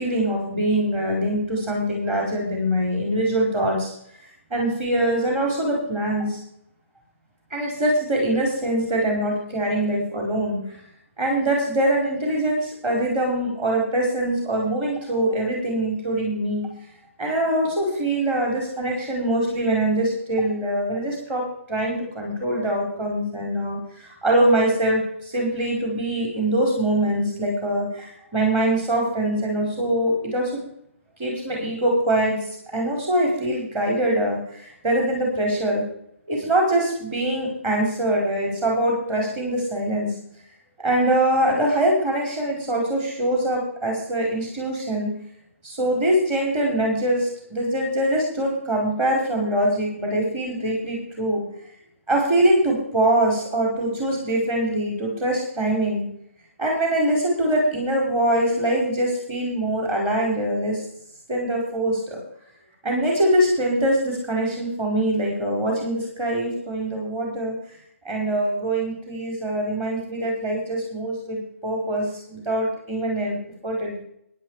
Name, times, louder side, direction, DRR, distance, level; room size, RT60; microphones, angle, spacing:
voice 1, 0.0-3.9 4.5-6.4 7.5-10.8 11.2-16.7 17.2-30.6 31.2-35.8 36.3-40.1 40.8-45.1 45.6-51.4 52.1-56.0 56.6-60.8 61.3-62.2 62.8-67.6 68.0-73.4 73.6-73.9, right 1 dB, 20° right, -1 dB, 4.9 m, -23 dB
13.0 x 10.5 x 5.0 m, 0.69 s
figure-of-eight pair, 135°, 8 cm